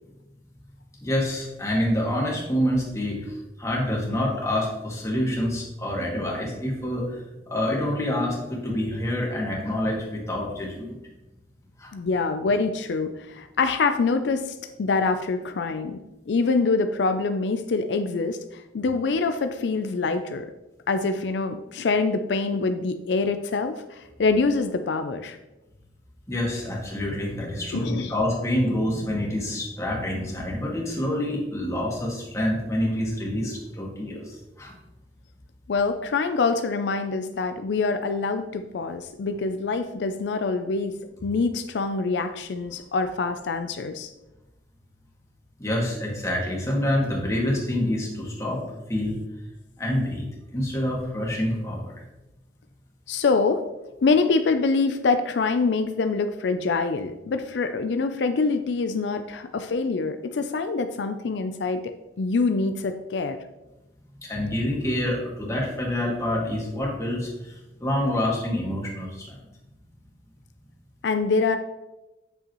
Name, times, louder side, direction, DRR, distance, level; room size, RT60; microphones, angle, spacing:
voice 1, 1.0-7.2 7.5-11.0 11.8-11.9 26.3-34.7 45.6-49.2 49.8-51.9 64.2-69.4, left 1 dB, 20° left, -3 dB, 1.8 m, -27 dB
voice 2, 11.9-16.0 16.3-20.5 20.9-25.4 27.7-28.1 35.7-44.1 53.1-53.6 54.0-63.4 71.0-71.6, left 4 dB, 85° left, 8 dB, 0.4 m, -25 dB
7.9 x 6.6 x 3.0 m, 1.0 s
head